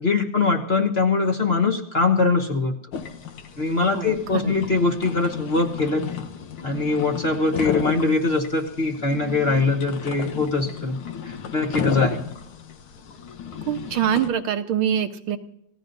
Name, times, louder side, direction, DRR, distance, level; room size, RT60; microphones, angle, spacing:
voice 1, 0.0-2.8 3.6-6.0 6.6-11.0 11.2-12.2, left 3 dB, 35° left, 2 dB, 1.2 m, -22 dB
sound 1, 2.9-14.3, left 7 dB, 85° left, 1.9 m, -33 dB
voice 2, 3.9-4.5 13.7-15.4, right 9 dB, 90° right, 7 dB, 1.8 m, -24 dB
28.5 x 16.5 x 2.6 m, 0.82 s
omnidirectional pair, 2.2 m